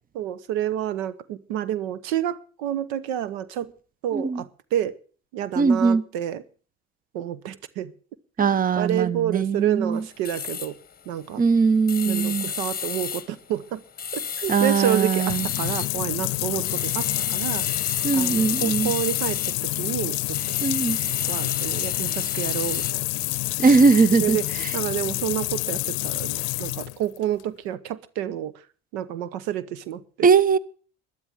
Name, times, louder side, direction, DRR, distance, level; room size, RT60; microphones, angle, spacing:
voice 1, 0.1-3.7 4.0-5.0 5.3-6.4 7.1-7.9 8.4-10.8 11.1-11.4 12.1-13.8 14.1-17.7 18.1-20.4 21.3-23.0 24.2-24.4 24.7-28.5 28.9-30.3, right 11 dB, 80° right, 1.0 m, -29 dB
voice 2, 5.6-6.0 8.4-10.0 11.4-12.5 14.5-15.5 18.0-18.9 20.6-21.0 23.6-24.7 30.2-30.6, right 5 dB, 25° right, 0.9 m, -20 dB
sound 1, 10.0-19.8 20.1-22.9, left 7 dB, 30° left, 1.0 m, -31 dB
sound 2, 15.0-27.4, left 24 dB, 75° left, 0.6 m, -28 dB
12.5 x 11.5 x 7.4 m
hypercardioid pair, 65°, 32 cm